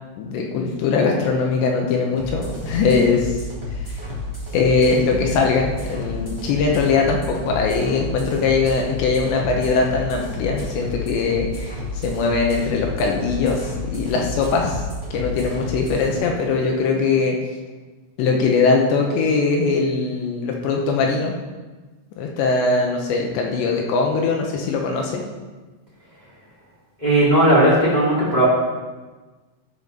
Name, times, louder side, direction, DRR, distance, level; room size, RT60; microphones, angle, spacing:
voice 1, 0.2-3.4 4.5-14.8 15.1-17.4 18.2-21.3 22.2-25.2, left 4 dB, 75° left, 1 dB, 2.8 m, -21 dB
sound 1, 2.2-16.2, left 2 dB, 10° left, 1.9 m, -31 dB
voice 2, 27.0-28.4, right 1 dB, 20° right, -8 dB, 1.2 m, -16 dB
13.5 x 5.1 x 5.2 m, 1.3 s
omnidirectional pair, 5.8 m